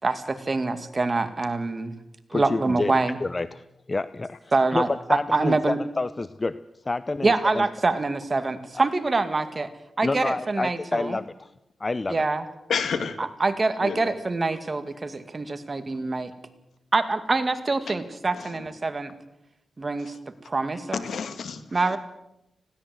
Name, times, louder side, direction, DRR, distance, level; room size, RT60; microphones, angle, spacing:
voice 1, 0.0-1.9 2.3-3.2 4.5-5.8 7.2-9.7 10.0-11.2 12.1-12.4 13.2-16.3 16.9-19.1 19.8-20.1 20.5-21.0 21.7-22.0, right 3 dB, 40° right, 9 dB, 2.2 m, -25 dB
voice 2, 2.3-2.9 3.2-4.8 5.1-6.6 6.9-7.7 8.7-8.8 10.0-11.5 11.8-12.2, left 3 dB, 35° left, 15 dB, 0.7 m, -28 dB
voice 3, 12.7-13.2 13.8-14.1 17.9-18.0 18.3-18.7 20.0-20.2 20.9-22.0, left 6 dB, 85° left, 10 dB, 2.0 m, -31 dB
20.0 x 17.0 x 7.8 m, 0.87 s
cardioid pair, 70°, 0 cm